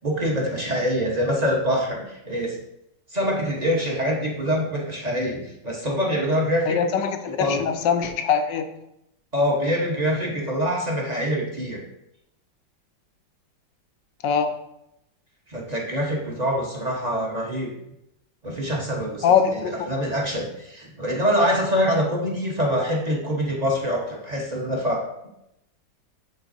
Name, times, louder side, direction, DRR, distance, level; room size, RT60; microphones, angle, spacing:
voice 1, 0.0-2.6 3.1-6.8 7.4-7.6 9.3-11.8 15.5-17.7 18.4-25.0, equal, 30° right, -2 dB, 0.9 m, -25 dB
voice 2, 6.7-8.7 14.2-14.6 19.2-19.7, left 7 dB, 75° left, 7 dB, 1.3 m, -22 dB
11.0 x 3.9 x 2.6 m, 0.82 s
omnidirectional pair, 2.0 m